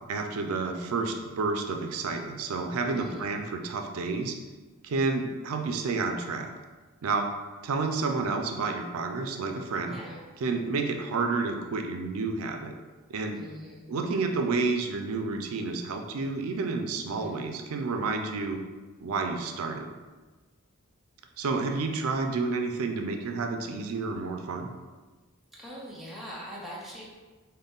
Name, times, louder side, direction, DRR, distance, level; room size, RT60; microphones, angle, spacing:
voice 1, 0.1-4.4 4.8-6.5 7.0-7.3 7.6-10.0 10.4-12.7 13.1-13.4 13.9-18.6 19.0-19.9 21.4-24.7, right 4 dB, 90° right, 4 dB, 0.4 m, -30 dB
voice 2, 2.9-3.3 9.9-10.2 13.3-13.9 17.1-17.4 25.5-27.1, equal, ahead, -6 dB, 0.7 m, -42 dB
3.9 x 2.1 x 3.5 m, 1.3 s
head